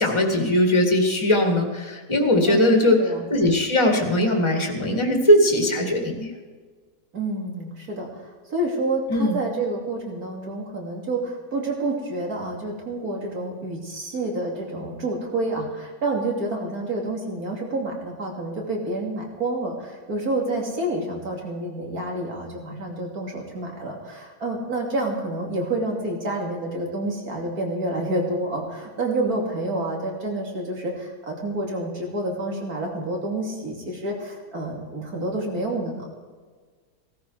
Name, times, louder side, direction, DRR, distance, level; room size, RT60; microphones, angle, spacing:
voice 1, 0.0-3.0 3.3-6.3 9.1-9.4, left 1 dB, 15° left, 2 dB, 2.0 m, -20 dB
voice 2, 2.5-3.3 7.1-36.0, right 2 dB, 55° right, 0 dB, 3.3 m, -28 dB
17.0 x 13.5 x 4.8 m, 1.5 s
omnidirectional pair, 1.8 m